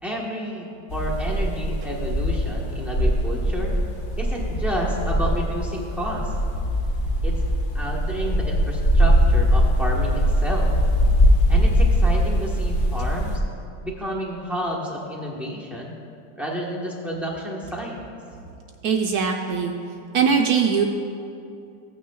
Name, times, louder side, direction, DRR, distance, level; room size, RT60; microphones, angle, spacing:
voice 1, 0.0-3.7 4.2-6.3 7.2-7.4 7.7-10.7 11.5-13.4 13.8-15.9 16.4-18.0, equal, ahead, -3 dB, 0.7 m, -30 dB
sound 1, 0.9-13.4, equal, 75° left, 0.4 m, -21 dB
voice 2, 18.8-19.7 20.1-20.8, right 6 dB, 70° right, 2 dB, 0.9 m, -21 dB
15.5 x 9.1 x 2.3 m, 2.5 s
omnidirectional pair, 2.1 m